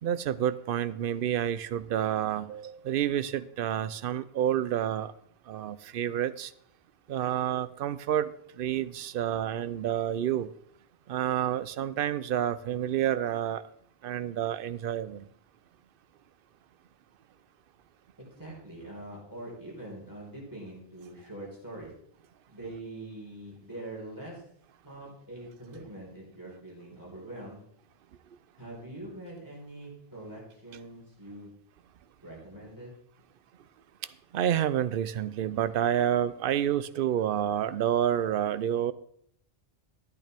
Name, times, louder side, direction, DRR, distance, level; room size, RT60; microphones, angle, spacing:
voice 1, 0.0-5.1 5.5-6.5 7.1-10.5 11.1-13.6 14.0-15.3 34.3-38.9, right 10 dB, 65° right, 0.7 m, -29 dB
voice 2, 18.3-22.0 22.5-24.5 24.8-27.7 28.6-31.5 32.2-33.0, right 1 dB, 20° right, 4.3 m, -43 dB
13.5 x 9.0 x 3.5 m
omnidirectional pair, 1.0 m